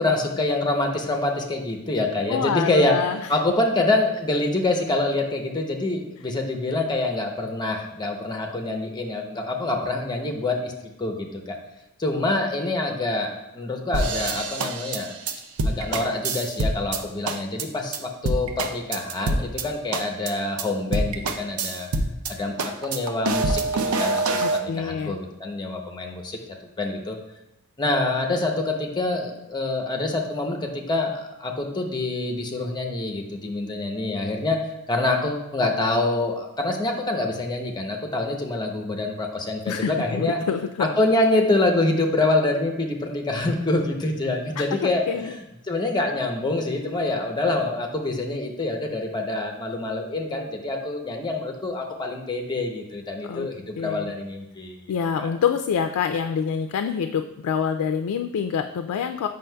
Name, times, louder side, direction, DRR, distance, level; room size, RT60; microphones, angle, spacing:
voice 1, 0.0-3.0 3.3-10.7 11.0-11.6 12.0-15.1 15.6-21.9 22.3-26.4 26.8-27.2 27.8-34.6 34.9-40.4 41.0-54.8 55.2-55.3, left 2 dB, 20° left, 2 dB, 0.7 m, -26 dB
voice 2, 2.3-3.2 24.4-25.2 39.7-40.9 44.6-45.3 53.3-53.5 53.8-54.1 54.9-59.3, left 7 dB, 80° left, 7 dB, 0.3 m, -26 dB
sound 1, 13.9-17.0 17.3-17.6 17.9-18.0 18.3-19.6 19.9-20.3 20.6-20.7 20.9-22.3 22.6-24.6, right 2 dB, 70° right, 0.5 m, -25 dB
7.6 x 5.5 x 2.2 m, 0.89 s
head